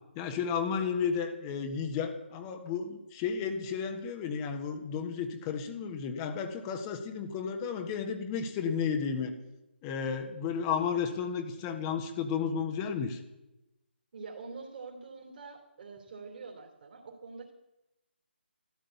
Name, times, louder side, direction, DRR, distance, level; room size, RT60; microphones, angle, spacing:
voice 1, 0.1-9.3 9.8-13.2, left 6 dB, 20° left, 6 dB, 1.4 m, -33 dB
voice 2, 14.1-17.5, right 4 dB, 45° right, 1 dB, 3.2 m, -45 dB
13.0 x 13.0 x 8.3 m, 0.95 s
figure-of-eight pair, 150°, 6 cm